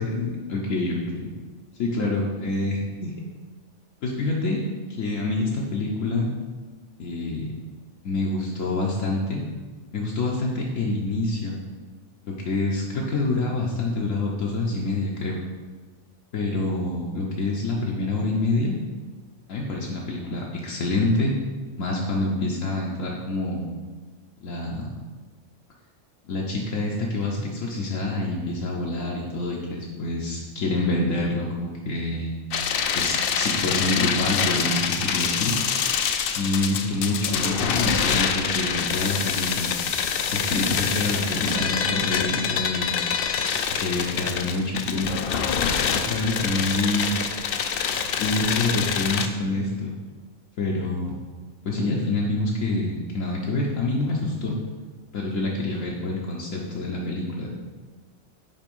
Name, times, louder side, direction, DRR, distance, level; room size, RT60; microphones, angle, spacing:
voice 1, 0.0-1.3 1.8-3.1 4.0-4.6 4.9-6.3 7.0-7.5 8.0-9.4 9.9-11.6 12.2-15.4 16.3-18.8 19.5-21.3 21.8-23.7 24.4-24.8 26.2-32.4 32.9-35.5 36.2-39.7 40.3-43.0 43.7-45.3 45.9-47.3 48.2-49.9 50.6-51.3 51.6-54.6 55.1-57.5, left 2 dB, 80° left, -3 dB, 1.2 m, -27 dB
sound 1, 32.5-49.3, left 7 dB, 65° left, 0.6 m, -26 dB
5.8 x 4.4 x 5.3 m, 1.4 s
omnidirectional pair, 1.3 m